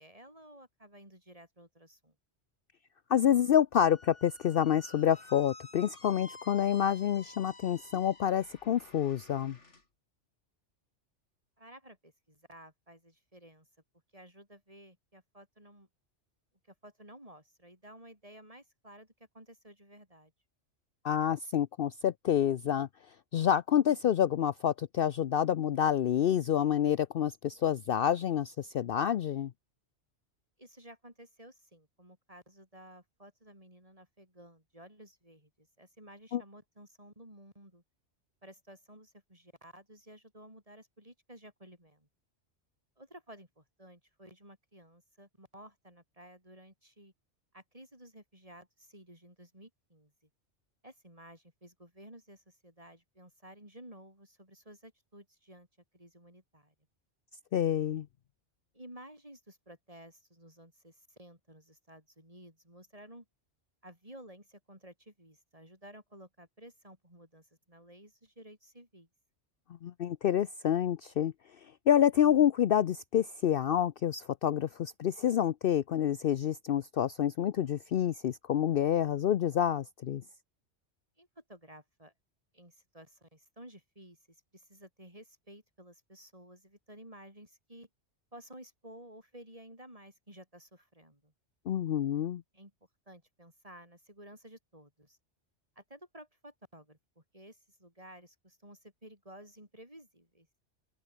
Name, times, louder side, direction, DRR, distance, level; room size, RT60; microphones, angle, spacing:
voice 1, 0.0-2.1 11.6-13.7 14.1-15.9 16.6-20.3 30.6-37.8 38.4-42.1 43.0-47.1 47.5-50.1 50.8-55.7 55.9-56.7 58.7-63.3 63.8-69.1 81.2-82.1 82.5-87.9 88.3-91.3 92.5-92.7 93.1-95.2 95.8-100.5, right 1 dB, 30° right, 8.1 m, -54 dB
voice 2, 3.1-9.6 21.0-22.9 23.3-29.5 36.3-36.4 57.5-58.1 69.8-71.3 71.9-80.2 91.7-92.4, left 10 dB, 60° left, 0.7 m, -28 dB
Squeak, 3.7-9.8, left 2 dB, 85° left, 4.2 m, -53 dB
open air
omnidirectional pair, 1.2 m